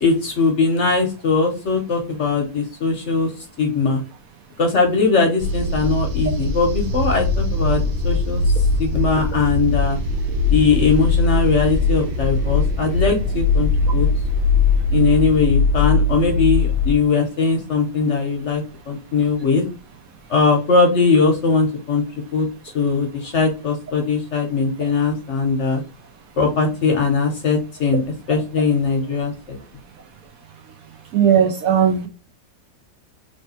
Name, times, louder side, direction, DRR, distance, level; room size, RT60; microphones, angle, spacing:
voice 1, 0.0-3.3 3.6-4.0 4.6-8.4 8.8-10.0 10.5-14.1 14.9-19.6 20.3-22.0 22.3-22.5 22.7-25.8 26.4-28.0 28.3-29.6, left 4 dB, 55° left, 0.9 m, -20 dB
sound 1, 5.4-17.0, left 3 dB, 85° right, 1.4 m, -20 dB
voice 2, 31.1-32.1, right 8 dB, 65° right, 0.9 m, -16 dB
3.2 x 3.1 x 4.1 m
omnidirectional pair, 1.8 m